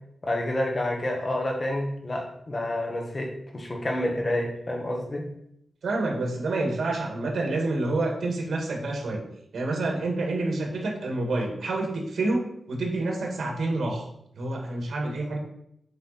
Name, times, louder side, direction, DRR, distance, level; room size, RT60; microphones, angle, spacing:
voice 1, 0.2-5.3, left 1 dB, 30° left, 2 dB, 1.3 m, -29 dB
voice 2, 5.8-9.2 9.5-14.0 14.4-15.4, right 2 dB, 75° right, 0 dB, 1.9 m, -28 dB
8.0 x 5.1 x 4.3 m, 0.75 s
wide cardioid pair, 145°, 0 cm